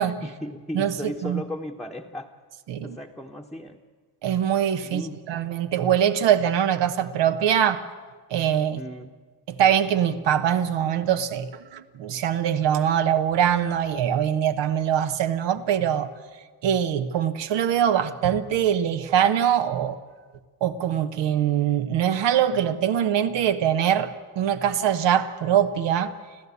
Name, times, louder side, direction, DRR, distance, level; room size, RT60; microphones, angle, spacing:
voice 1, 0.0-2.3 2.8-3.8 4.8-5.3 8.8-9.1, left 1 dB, ahead, 1.0 m, -36 dB
voice 2, 0.7-1.4 2.7-3.0 4.2-5.0 5.3-7.8 8.3-8.8 9.5-16.1 16.6-20.0 20.6-26.1, right 9 dB, 75° right, 1.2 m, -23 dB
26.0 x 15.0 x 8.3 m
cardioid pair, 120°, 43 cm